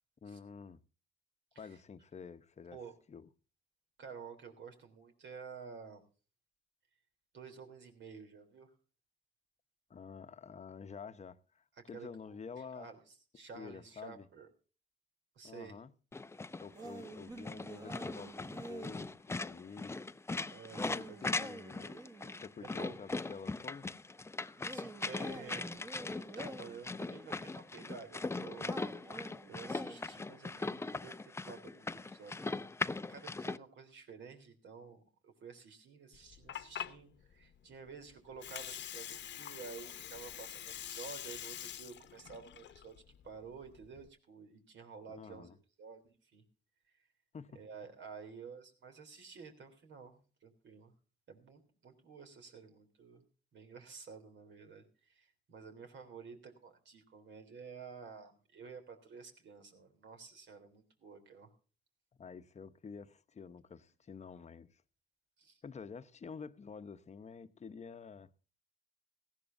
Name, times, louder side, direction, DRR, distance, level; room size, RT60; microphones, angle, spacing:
voice 1, 0.2-0.8 1.6-2.8 3.1-3.3 9.9-12.9 13.5-14.3 15.4-15.9 16.6-20.0 20.7-21.9 22.4-23.9 45.1-45.6 47.3-47.6 62.2-64.8 65.6-68.3, left 6 dB, 35° left, 0.9 m, -49 dB
voice 2, 4.0-6.0 7.3-8.7 11.9-12.1 12.7-13.0 13.3-14.5 15.3-15.8 20.5-21.5 22.6-23.0 24.7-25.7 26.1-28.7 29.0-32.7 33.1-45.5 45.8-46.4 47.5-50.9 51.3-53.2 53.5-61.5 65.4-65.6, right 5 dB, 65° right, 3.4 m, -51 dB
sound 1, 16.1-33.6, left 3 dB, 15° left, 0.5 m, -40 dB
sound 2, 16.7-19.1 20.7-22.4 24.6-26.8 28.6-30.2, right 2 dB, 20° right, 1.5 m, -48 dB
Water, 36.1-44.1, left 10 dB, 65° left, 1.0 m, -46 dB
18.5 x 15.0 x 2.6 m
cardioid pair, 90°, 20 cm